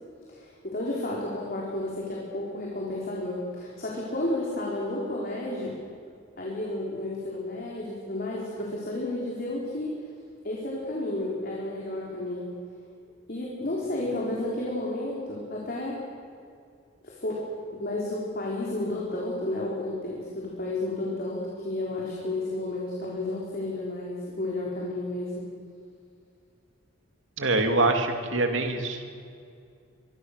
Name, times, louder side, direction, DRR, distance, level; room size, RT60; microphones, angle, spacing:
voice 1, 0.3-5.7 6.4-9.9 10.4-12.5 13.3-16.0 17.0-17.3 17.7-25.3, left 1 dB, 50° left, -4 dB, 4.1 m, -32 dB
voice 2, 27.4-29.0, right 2 dB, 75° right, 5 dB, 2.7 m, -24 dB
24.5 x 23.0 x 6.7 m, 2.3 s
head